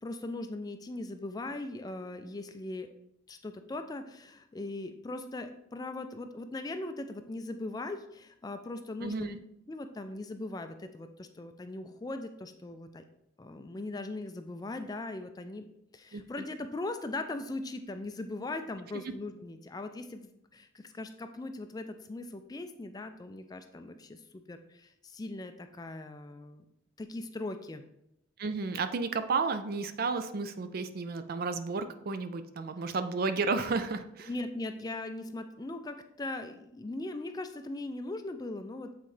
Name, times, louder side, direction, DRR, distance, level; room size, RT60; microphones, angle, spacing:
voice 1, 0.0-2.9 3.3-9.3 9.7-13.0 13.4-15.7 15.9-26.6 27.0-27.9 34.3-38.9, left 2 dB, 20° left, 8 dB, 0.3 m, -39 dB
voice 2, 9.0-9.4 16.1-16.2 28.4-34.3, right 4 dB, 50° right, 10 dB, 0.4 m, -32 dB
7.7 x 4.0 x 3.2 m, 0.81 s
head